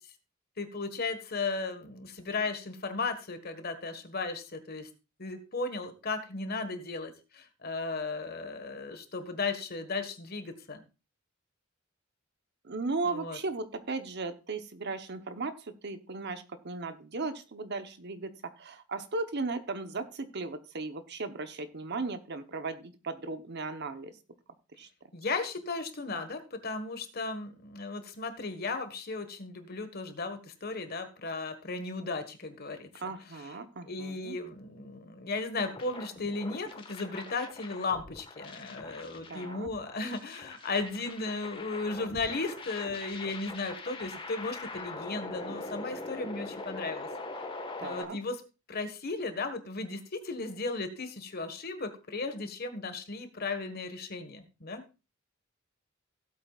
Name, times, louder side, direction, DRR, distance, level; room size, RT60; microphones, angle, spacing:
voice 1, 0.6-4.9 5.2-10.8 13.0-13.4 25.1-33.1 33.9-47.1 47.8-48.4 48.7-54.8, left 3 dB, 50° left, 8 dB, 1.6 m, -35 dB
voice 2, 12.6-24.2 24.8-24.9 33.0-34.4 39.3-39.7 47.8-48.2, right 3 dB, 55° right, 10 dB, 1.0 m, -36 dB
sound 1, 35.6-48.0, left 2 dB, 25° left, 1.5 m, -42 dB
16.5 x 8.1 x 2.4 m, 0.30 s
head